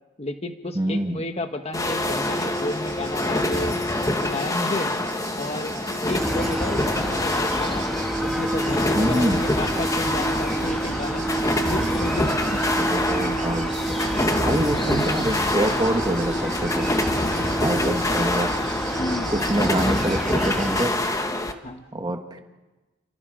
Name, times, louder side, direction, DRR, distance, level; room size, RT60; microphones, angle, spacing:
voice 1, 0.2-3.8 4.2-4.9 5.4-5.8 6.0-7.9 8.2-12.6 14.4-15.0 17.0-18.3 19.0-19.3 21.6-21.9, left 1 dB, 35° left, 6 dB, 1.3 m, -32 dB
voice 2, 0.7-1.3 8.9-9.4 12.8-16.9 17.6-18.5 19.3-20.9 21.9-22.4, right 1 dB, 20° right, 5 dB, 1.8 m, -26 dB
sound 1, 1.7-21.5, left 1 dB, 15° left, 1.4 m, -26 dB
sound 2, 2.2-20.9, right 7 dB, 45° right, 3.9 m, -43 dB
sound 3, 6.1-20.9, right 1 dB, ahead, 2.5 m, -28 dB
30.0 x 29.5 x 5.1 m, 1.1 s
head